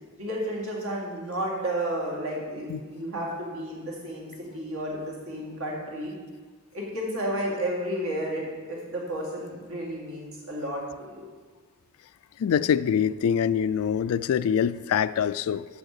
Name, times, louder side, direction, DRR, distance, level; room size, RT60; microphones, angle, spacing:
voice 1, 0.2-6.1 6.7-11.3, right 1 dB, 65° right, -2 dB, 2.2 m, -32 dB
voice 2, 12.4-15.7, left 8 dB, 65° left, 16 dB, 0.3 m, -24 dB
7.2 x 6.4 x 6.7 m, 1.4 s
head